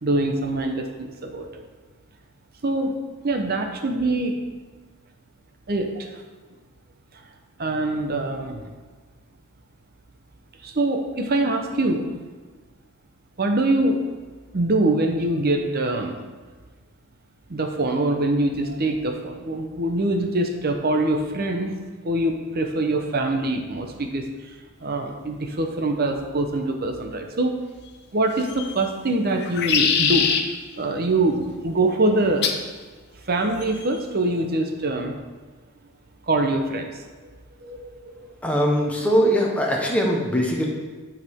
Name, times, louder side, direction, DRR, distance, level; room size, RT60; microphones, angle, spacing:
voice 1, 0.0-1.6 2.6-3.0 3.2-4.3 5.7-6.1 7.6-8.7 10.6-12.1 13.4-14.0 14.5-16.2 17.5-24.5 24.8-27.6 28.1-30.3 30.8-32.5 33.3-35.1 36.3-37.0 37.6-38.1, right 2 dB, 45° right, 4 dB, 0.8 m, -24 dB
sound 1, 28.4-28.8 29.4-30.4 32.4-32.7 33.6-34.0, left 6 dB, 50° left, 0.6 m, -23 dB
voice 2, 38.4-40.7, equal, 5° left, -2 dB, 1.0 m, -21 dB
11.0 x 4.8 x 3.6 m, 1.4 s
head